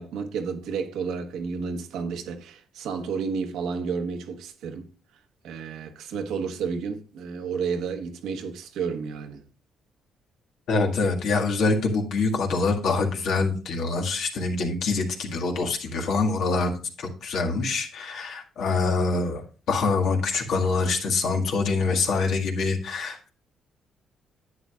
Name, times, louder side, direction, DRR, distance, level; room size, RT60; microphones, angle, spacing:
voice 1, 0.0-4.9 5.4-9.4, right 5 dB, 90° right, 1.2 m, -31 dB
voice 2, 10.7-23.3, left 3 dB, 75° left, 1.8 m, -25 dB
11.0 x 8.3 x 2.4 m
cardioid pair, 90°, 0 cm